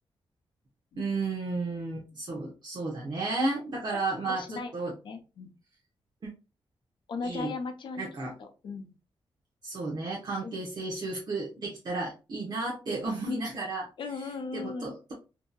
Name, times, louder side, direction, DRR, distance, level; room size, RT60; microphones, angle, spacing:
voice 1, 1.0-4.9 6.2-6.3 7.2-7.5 8.0-8.3 9.6-13.9 14.5-15.1, right 3 dB, 45° right, -3 dB, 0.8 m, -33 dB
voice 2, 4.3-5.5 7.1-8.1 8.4-8.9 10.4-10.6 14.0-15.0, left 4 dB, 60° left, 6 dB, 0.6 m, -37 dB
2.7 x 2.7 x 2.2 m, 0.30 s
wide cardioid pair, 115°, 9 cm